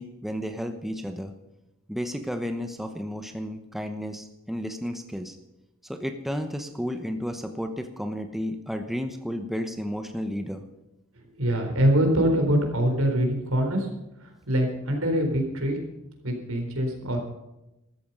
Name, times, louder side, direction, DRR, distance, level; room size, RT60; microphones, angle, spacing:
voice 1, 0.0-1.3 1.9-5.4 5.8-10.6, equal, ahead, 6 dB, 0.9 m, -32 dB
voice 2, 11.4-13.9 14.2-15.8 16.2-17.2, equal, 75° right, 3 dB, 4.0 m, -24 dB
14.0 x 13.5 x 5.5 m, 0.93 s
head